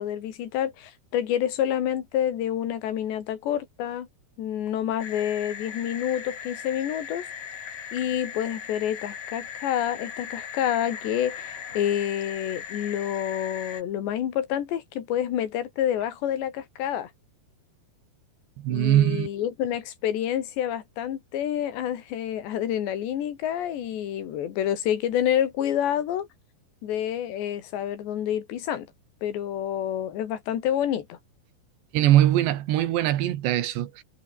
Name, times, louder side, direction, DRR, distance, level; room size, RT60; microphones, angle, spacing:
voice 1, 0.0-4.1 4.4-7.3 7.9-17.1 18.7-26.3 26.8-28.9 29.2-31.2, left 10 dB, 90° left, 4.6 m, -28 dB
sound 1, 5.0-13.8, left 8 dB, 55° left, 4.1 m, -38 dB
voice 2, 18.6-19.3 31.9-34.0, right 13 dB, 90° right, 3.8 m, -21 dB
omnidirectional pair, 4.9 m